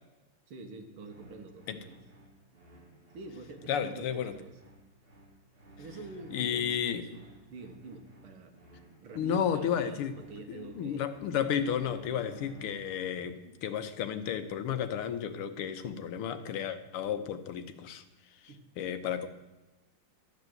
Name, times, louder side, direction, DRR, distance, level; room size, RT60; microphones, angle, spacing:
voice 1, 0.5-2.0 3.1-4.6 5.8-7.2 7.5-11.1 18.5-18.6, right 3 dB, 75° right, 5 dB, 2.3 m, -47 dB
sound 1, 1.0-13.1, right 1 dB, 25° right, 2.5 m, -54 dB
voice 2, 3.7-4.4 6.3-7.1 9.2-10.2 10.5-18.0 18.8-19.3, left 8 dB, 80° left, 9 dB, 1.9 m, -32 dB
13.5 x 8.0 x 7.9 m, 1.0 s
omnidirectional pair, 2.4 m